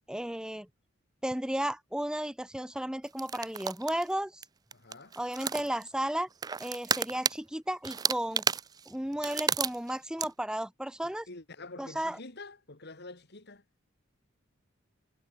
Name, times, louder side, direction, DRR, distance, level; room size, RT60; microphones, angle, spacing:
voice 1, 0.1-0.7 1.2-4.4 5.2-6.3 6.6-8.4 8.9-11.3 11.8-12.2, right 1 dB, 5° right, 0.8 m, -34 dB
sound 1, 3.2-4.1 4.4-4.5 4.7-5.9 6.4-7.4 7.8-9.9 10.2-10.3, right 6 dB, 20° right, 0.4 m, -31 dB
voice 2, 4.7-5.1 11.0-13.6, left 2 dB, 55° left, 2.6 m, -47 dB
head